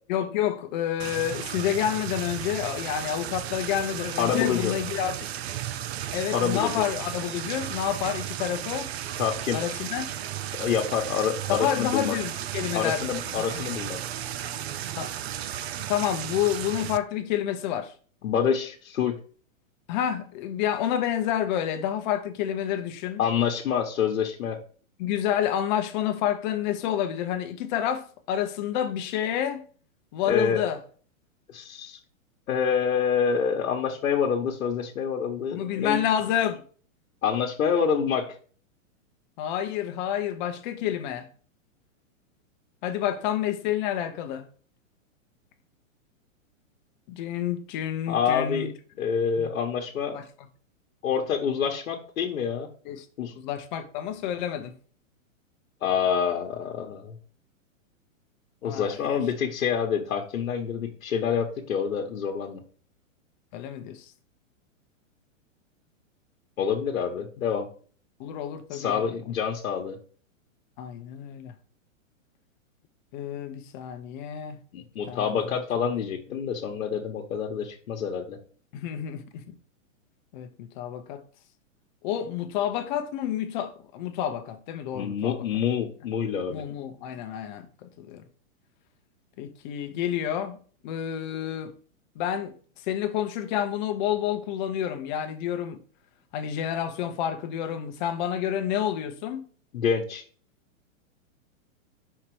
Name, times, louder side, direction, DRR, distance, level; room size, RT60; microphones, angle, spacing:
voice 1, 0.1-5.1 6.1-8.9 9.5-10.1 11.5-13.7 15.0-15.1 15.9-17.9 19.9-23.2 25.0-29.6 30.1-30.8 35.5-36.6 39.4-41.3 42.8-44.5 47.1-48.7 49.4-49.5 50.1-50.2 52.9-53.1 53.4-54.7 58.6-59.2 63.5-64.1 68.2-69.1 70.8-71.5 73.1-74.6 75.1-75.6 78.7-79.5 80.3-81.2 82.0-85.4 86.5-88.2 89.4-90.6 90.8-91.7 92.2-92.5 92.8-95.8 96.3-99.5, left 10 dB, 35° left, 0.8 m, -29 dB
sound 1, 1.0-17.0, right 11 dB, 50° right, 0.6 m, -34 dB
voice 2, 4.2-4.7 6.3-6.7 9.2-9.6 10.5-12.2 12.7-14.0 18.2-19.2 23.2-24.6 30.2-30.6 31.5-32.0 32.5-36.0 37.2-38.3 48.1-48.7 49.0-50.2 51.0-52.7 53.2-53.3 55.8-57.1 58.6-62.6 66.6-67.7 68.7-70.0 74.7-78.4 84.9-86.6 99.7-100.2, left 7 dB, 80° left, 1.3 m, -27 dB
5.7 x 4.4 x 4.8 m
hypercardioid pair, 150°, 41 cm